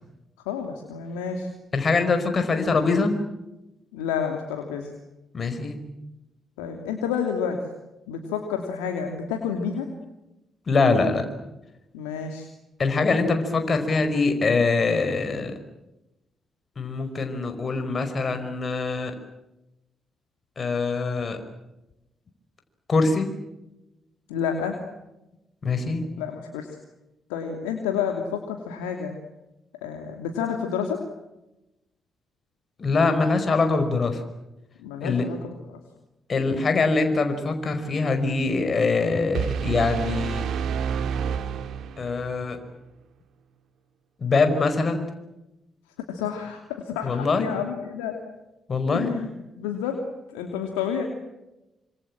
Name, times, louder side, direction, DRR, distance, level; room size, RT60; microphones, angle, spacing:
voice 1, 0.5-1.5 3.9-4.9 6.6-7.6 8.1-9.9 11.9-12.5 24.3-24.8 26.2-26.7 27.3-29.2 29.8-31.0 34.8-35.8 46.1-48.2 48.9-49.3 49.6-50.0 50.3-51.0, left 7 dB, 85° left, 3 dB, 2.8 m, -29 dB
voice 2, 1.7-3.1 5.3-5.8 10.7-11.2 12.8-15.5 16.8-19.1 20.6-21.4 22.9-23.3 25.6-26.1 32.8-34.2 35.0-35.2 36.3-40.5 42.0-42.6 44.2-45.1 47.0-47.5 48.7-49.1, left 3 dB, 45° left, 7 dB, 5.1 m, -23 dB
sound 1, 39.3-42.3, right 7 dB, 65° right, 2.1 m, -28 dB
27.0 x 26.0 x 7.5 m, 0.94 s
hypercardioid pair, 40°, 0 cm